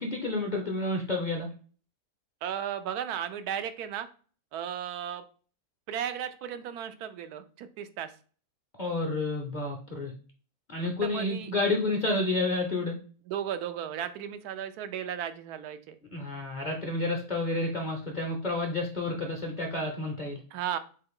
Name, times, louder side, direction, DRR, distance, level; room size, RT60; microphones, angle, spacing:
voice 1, 0.0-1.5 8.8-10.1 10.7-13.0 16.1-20.4, left 2 dB, 40° left, 2 dB, 0.7 m, -30 dB
voice 2, 2.4-4.1 4.5-5.2 5.9-8.1 11.0-11.5 13.3-16.0 20.5-20.8, right 9 dB, 85° right, 10 dB, 1.1 m, -35 dB
3.9 x 3.3 x 3.5 m, 0.40 s
omnidirectional pair, 1.6 m